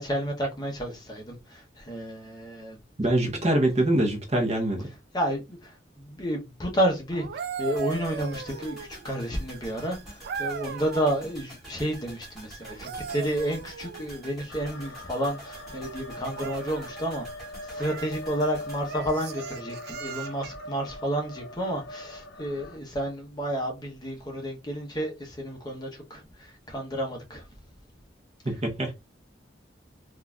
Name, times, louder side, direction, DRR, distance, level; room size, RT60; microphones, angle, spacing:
voice 1, 0.0-2.8 3.4-3.5 5.1-8.8 9.0-17.3 17.7-27.4, equal, 20° left, 0.8 m, -31 dB
voice 2, 3.0-4.9 28.4-28.9, right 1 dB, 35° right, 0.8 m, -24 dB
sound 1, 7.1-9.1 10.2-11.2 12.6-14.2 16.3-16.9 17.8-18.2 18.9-20.7 22.5-22.7, right 6 dB, 55° right, 0.3 m, -37 dB
sound 2, 7.8-19.9 20.2-20.3, right 2 dB, ahead, 2.0 m, -47 dB
sound 3, 14.5-22.8, left 1 dB, 70° left, 0.4 m, -42 dB
3.8 x 2.4 x 2.2 m
head